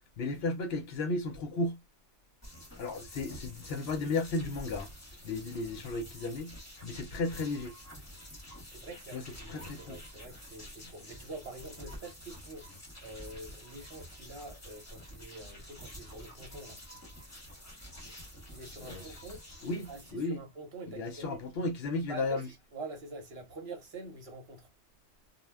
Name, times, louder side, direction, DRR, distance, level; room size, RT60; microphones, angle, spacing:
voice 1, 0.2-1.8 2.8-4.9 5.2-6.5 6.8-7.7 9.1-9.2 9.5-10.0 18.8-19.0 19.6-19.8 20.1-20.4 20.9-22.5, left 2 dB, 65° left, 0.7 m, -34 dB
sound 1, 2.4-20.1, equal, 15° left, 0.9 m, -49 dB
voice 2, 8.7-12.7 13.0-16.8 18.5-21.7 22.1-24.7, right 2 dB, 60° right, 1.1 m, -46 dB
2.2 x 2.1 x 3.3 m
omnidirectional pair, 1.2 m